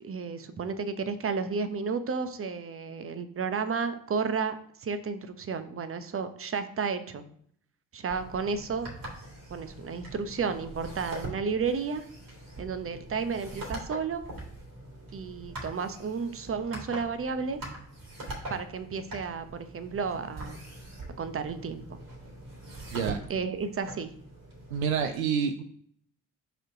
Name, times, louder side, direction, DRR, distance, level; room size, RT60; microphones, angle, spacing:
voice 1, 0.0-7.2 7.9-8.9 9.5-12.0 12.6-14.2 15.1-17.6 18.5-20.6 21.2-22.0 23.3-24.1, right 5 dB, 35° right, 10 dB, 0.9 m, -32 dB
sound 1, 8.1-25.1, right 1 dB, 55° right, 3.0 m, -43 dB
voice 2, 24.7-25.6, right 7 dB, 80° right, 8 dB, 0.5 m, -28 dB
4.9 x 4.5 x 5.0 m, 0.64 s
figure-of-eight pair, 40°, 41 cm